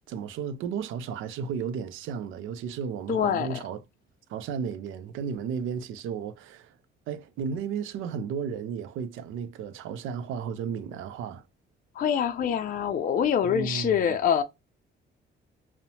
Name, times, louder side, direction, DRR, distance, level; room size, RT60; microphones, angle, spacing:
voice 1, 0.1-3.8 4.3-6.7 7.1-11.4 13.4-14.1, right 7 dB, 85° right, 0.4 m, -34 dB
voice 2, 3.1-3.6 12.0-14.4, left 8 dB, 45° left, 0.4 m, -25 dB
2.7 x 2.1 x 2.7 m
cardioid pair, 90°, 20 cm